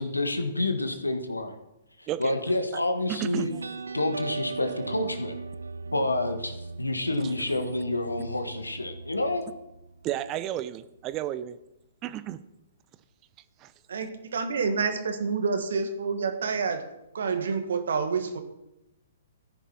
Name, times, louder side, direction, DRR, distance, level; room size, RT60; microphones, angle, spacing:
voice 1, 0.0-1.6 2.0-3.5 3.9-5.4 5.9-9.5, left 2 dB, 90° left, 7 dB, 1.6 m, -28 dB
voice 2, 3.1-3.6 7.5-7.7 10.0-11.6 12.0-12.4 13.6-13.7, right 12 dB, 30° right, 15 dB, 0.7 m, -32 dB
sound 1, 3.4-10.5, right 4 dB, 80° right, 0.6 m, -39 dB
voice 3, 13.9-16.8 17.1-18.4, right 5 dB, 65° right, 8 dB, 1.8 m, -28 dB
14.5 x 10.0 x 4.4 m, 0.91 s
figure-of-eight pair, 120°, 0 cm